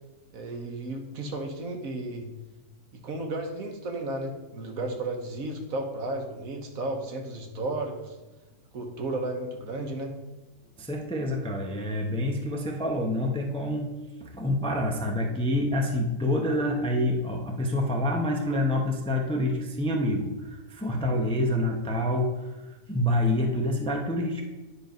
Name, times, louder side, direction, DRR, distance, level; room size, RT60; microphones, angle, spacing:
voice 1, 0.3-2.3 2.9-8.1 8.7-10.1, right 2 dB, 65° right, 4 dB, 1.4 m, -33 dB
voice 2, 10.8-13.9 14.2-24.4, left 1 dB, 5° left, 1 dB, 0.6 m, -27 dB
9.7 x 4.5 x 5.3 m, 1.2 s
omnidirectional pair, 1.6 m